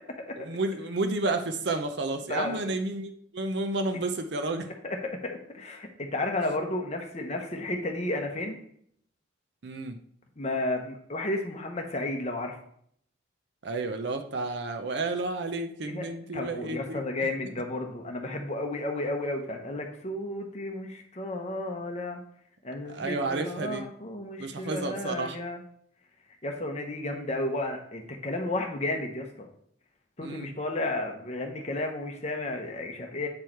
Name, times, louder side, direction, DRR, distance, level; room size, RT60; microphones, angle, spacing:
voice 1, 0.4-4.7 9.6-10.0 13.6-17.0 22.9-23.8 24.4-25.4 30.2-30.5, right 2 dB, 60° right, 6 dB, 0.6 m, -31 dB
voice 2, 2.3-2.7 4.8-5.0 5.2-8.6 10.4-12.6 15.8-16.1 16.3-22.2 22.6-25.6 26.4-29.5 30.2-33.3, left 2 dB, 35° left, 3 dB, 0.9 m, -32 dB
8.6 x 4.6 x 4.5 m, 0.66 s
head